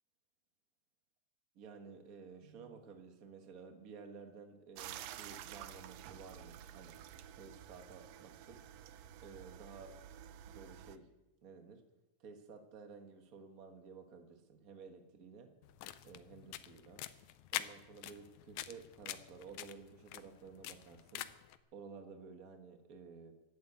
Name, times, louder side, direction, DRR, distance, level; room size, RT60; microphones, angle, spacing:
voice 1, 1.5-7.0 7.3-8.6 9.2-10.0 10.5-11.1 11.4-11.8 12.2-15.5 16.0-17.0 17.5-21.3 21.7-23.3, right 5 dB, 40° right, 5 dB, 1.4 m, -53 dB
sound 1, 4.8-11.0, right 10 dB, 75° right, 1.7 m, -51 dB
sound 2, 15.6-21.6, left 13 dB, 80° left, 1.9 m, -46 dB
11.5 x 10.5 x 8.1 m, 0.99 s
omnidirectional pair, 3.3 m